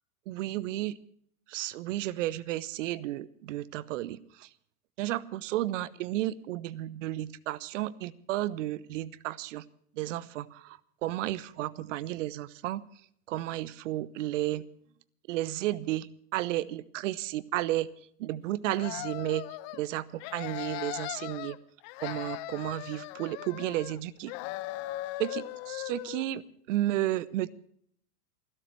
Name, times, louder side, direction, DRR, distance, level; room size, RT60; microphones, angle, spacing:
voice 1, 0.3-1.0 1.5-4.5 5.0-9.6 10.0-12.8 13.3-14.7 15.3-17.9 18.2-19.4 19.7-21.6 22.0-24.3 25.2-27.5, right 15 dB, 55° right, 19 dB, 0.9 m, -33 dB
sound 1, 18.7-19.8 20.2-21.6 21.8-24.0 24.3-26.3, left 17 dB, 40° left, 0.8 m, -39 dB
28.0 x 12.0 x 3.2 m, 0.65 s
hypercardioid pair, 110°, 46 cm